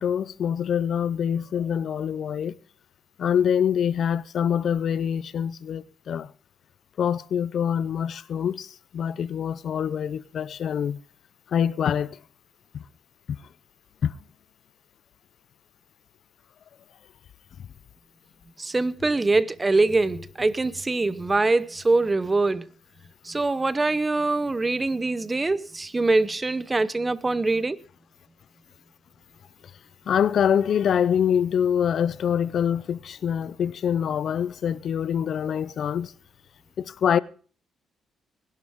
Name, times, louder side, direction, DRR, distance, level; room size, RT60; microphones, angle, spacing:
voice 1, 0.0-2.6 3.2-6.3 7.0-11.0 11.5-12.2 14.0-14.1 30.1-36.1 36.8-37.2, left 8 dB, 60° left, 0.5 m, -25 dB
voice 2, 18.6-22.7 23.2-27.8, right 3 dB, 20° right, 0.8 m, -23 dB
20.0 x 11.5 x 3.6 m
cardioid pair, 90°, 0 cm